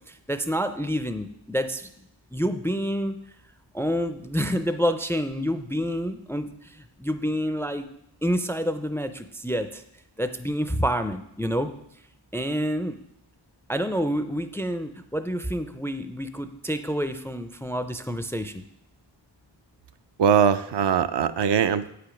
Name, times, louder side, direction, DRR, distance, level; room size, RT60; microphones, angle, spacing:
voice 1, 0.1-1.9 2.3-3.1 3.7-7.9 8.2-9.8 10.2-11.7 12.3-13.0 13.7-18.6, equal, 5° left, 10 dB, 0.4 m, -28 dB
voice 2, 20.2-21.9, right 8 dB, 65° right, 11 dB, 0.5 m, -21 dB
8.4 x 5.1 x 5.8 m, 0.78 s
wide cardioid pair, 90°, 45 cm